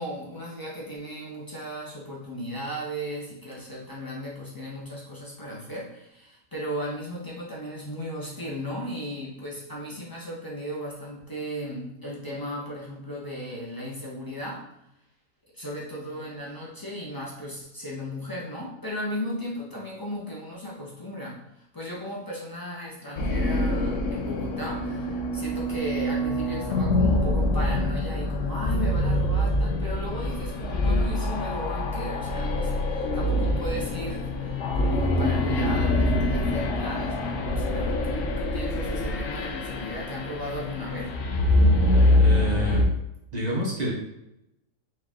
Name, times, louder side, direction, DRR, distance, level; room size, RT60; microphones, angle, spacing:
voice 1, 0.0-14.6 15.5-41.1, equal, 25° left, -5 dB, 0.4 m, -36 dB
sound 1, 23.2-42.9, left 1 dB, 70° left, 0.7 m, -25 dB
voice 2, 42.2-42.9 43.3-43.9, left 1 dB, 45° right, -4 dB, 0.5 m, -28 dB
4.6 x 2.4 x 3.6 m, 0.85 s
omnidirectional pair, 1.8 m